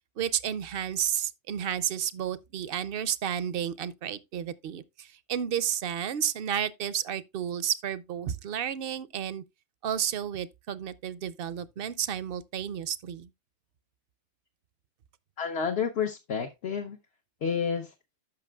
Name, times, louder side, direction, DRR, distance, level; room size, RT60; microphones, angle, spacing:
voice 1, 0.2-9.4 9.8-13.3, right 9 dB, 60° right, 0.7 m, -32 dB
voice 2, 15.4-17.0 17.4-17.9, left 6 dB, 65° left, 1.0 m, -30 dB
13.5 x 5.9 x 2.3 m
omnidirectional pair, 1.2 m